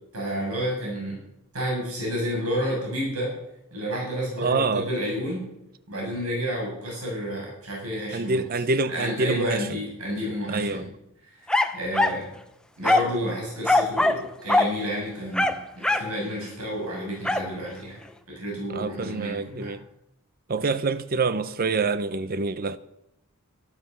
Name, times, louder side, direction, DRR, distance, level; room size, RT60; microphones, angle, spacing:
voice 1, 0.1-1.2 1.5-3.3 3.7-5.4 5.9-8.4 8.9-10.8 11.3-12.3 12.8-18.0 18.3-19.7, equal, 85° right, 7.2 m, -30 dB
voice 2, 4.4-4.9 8.1-9.7 10.5-10.9 18.7-19.8 20.5-22.8, right 3 dB, 45° right, 0.7 m, -26 dB
sound 1, 11.5-12.2 12.8-13.2 13.6-14.2 14.5-14.7 15.3-16.1 17.2-17.5, left 2 dB, 5° left, 0.8 m, -22 dB
13.5 x 13.0 x 6.7 m
head